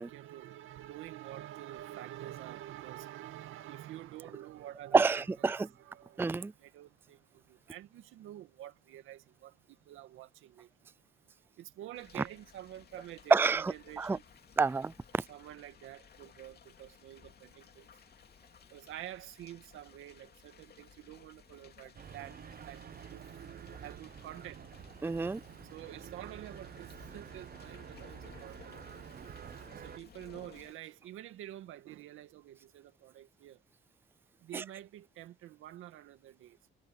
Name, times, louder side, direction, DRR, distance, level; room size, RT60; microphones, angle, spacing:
voice 1, 0.0-10.7 11.6-14.2 15.3-17.9 18.7-22.4 22.6-23.3 23.8-24.6 25.7-28.7 29.2-29.5 29.7-33.6 34.4-36.7, right 13 dB, 90° right, 2.2 m, -48 dB
voice 2, 4.9-5.7 6.2-6.5 13.3-14.2 14.6-15.2 25.0-25.4 34.5-34.6, right 4 dB, 10° right, 0.4 m, -28 dB
sound 1, 11.9-30.7, left 7 dB, 55° left, 2.6 m, -58 dB
sound 2, 21.9-30.0, right 8 dB, 50° right, 1.0 m, -49 dB
cardioid pair, 90°, 20 cm